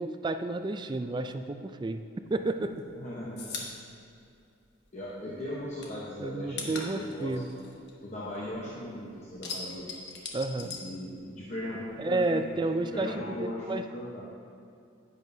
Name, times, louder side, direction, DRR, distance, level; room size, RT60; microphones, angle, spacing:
voice 1, 0.0-2.0 2.3-2.7 6.2-7.5 10.3-10.7 12.0-13.8, right 2 dB, 25° right, 8 dB, 0.3 m, -31 dB
sound 1, 2.3-5.1 5.4-8.7 9.0-11.6 11.9-13.0, left 4 dB, 55° left, 1.1 m, -41 dB
voice 2, 3.0-3.7 4.9-7.4 8.0-9.9 10.6-14.2, left 1 dB, 35° left, -6 dB, 0.9 m, -38 dB
10.5 x 9.1 x 2.7 m, 2.6 s
head